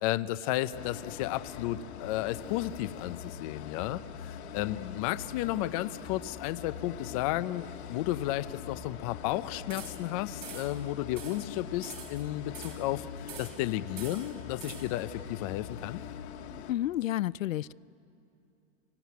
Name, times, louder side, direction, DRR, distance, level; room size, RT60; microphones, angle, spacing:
voice 1, 0.0-16.0, left 15 dB, 30° left, 15 dB, 0.6 m, -33 dB
sound 1, 0.7-16.7, left 8 dB, 55° left, 1.8 m, -43 dB
voice 2, 4.6-5.0 16.7-17.7, left 14 dB, 85° left, 20 dB, 0.5 m, -32 dB
sound 2, 9.7-10.1 10.4-10.8 11.2-11.5 11.8-12.9 13.3-13.7 14.0-15.0, right 7 dB, 70° right, 4.8 m, -46 dB
24.5 x 23.5 x 9.4 m, 2.7 s
hypercardioid pair, 150°, 39 cm